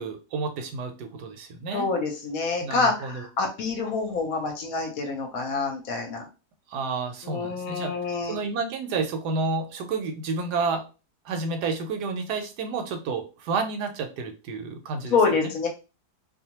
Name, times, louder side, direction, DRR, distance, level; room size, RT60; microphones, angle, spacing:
voice 1, 0.0-1.9 2.6-3.2 6.7-7.9 8.3-10.8 11.2-15.2, right 4 dB, 80° right, 5 dB, 1.2 m, -30 dB
voice 2, 1.7-6.2 7.2-8.5 15.1-15.7, left 4 dB, 65° left, 3 dB, 1.0 m, -27 dB
2.6 x 2.2 x 2.8 m, 0.32 s
omnidirectional pair, 1.7 m